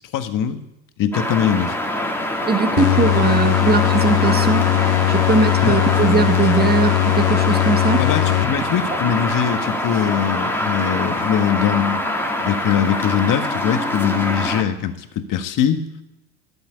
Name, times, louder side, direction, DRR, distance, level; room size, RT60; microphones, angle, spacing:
voice 1, 0.1-0.6 1.0-1.7 5.6-5.8 8.0-12.0 12.4-15.9, left 9 dB, 45° left, 8 dB, 1.6 m, -21 dB
sound 1, 1.1-14.6, left 1 dB, 5° left, 2.2 m, -24 dB
voice 2, 2.5-4.7 5.1-8.0, right 4 dB, 20° right, 8 dB, 1.4 m, -20 dB
sound 2, 2.8-8.9, left 19 dB, 65° left, 0.6 m, -19 dB
12.5 x 7.9 x 9.9 m, 0.88 s
hypercardioid pair, 80°, 46 cm